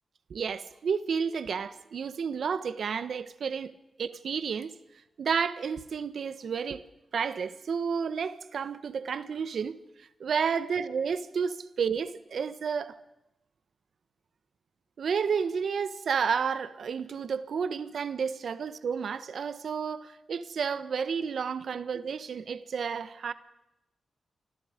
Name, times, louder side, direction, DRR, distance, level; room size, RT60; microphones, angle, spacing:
voice 1, 0.3-3.7 4.0-4.7 5.2-6.8 7.1-9.8 10.2-12.9 15.0-23.3, right 6 dB, 65° right, 1.3 m, -31 dB
29.5 x 25.5 x 5.2 m
wide cardioid pair, 145°, 0 cm